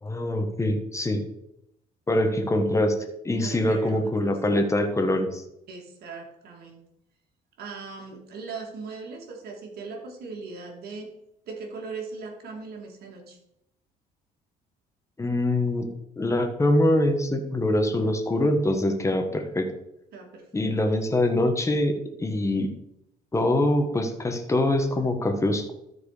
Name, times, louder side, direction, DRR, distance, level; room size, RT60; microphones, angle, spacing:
voice 1, 0.0-1.2 2.1-2.9 3.2-5.4 15.2-15.9 16.2-19.7 20.5-21.9 22.2-22.7 23.3-25.7, left 1 dB, 15° left, 5 dB, 1.5 m, -24 dB
voice 2, 3.4-4.4 5.7-6.8 7.6-11.1 11.5-13.4 20.1-20.7, right 4 dB, 70° right, 1 dB, 2.6 m, -39 dB
13.0 x 4.7 x 5.0 m, 0.82 s
cardioid pair, 110°, 17 cm